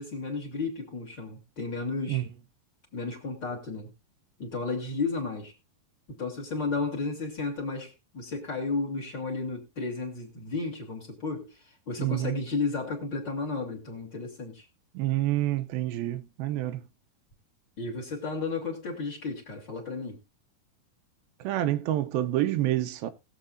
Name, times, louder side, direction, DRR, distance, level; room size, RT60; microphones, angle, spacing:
voice 1, 0.0-2.2 2.9-3.9 4.4-5.5 6.1-14.7 17.8-20.2, left 3 dB, 35° left, 2.7 m, -33 dB
voice 2, 12.0-12.4 14.9-16.8 21.4-23.1, right 14 dB, 80° right, 2.5 m, -28 dB
20.0 x 7.6 x 2.5 m
omnidirectional pair, 4.3 m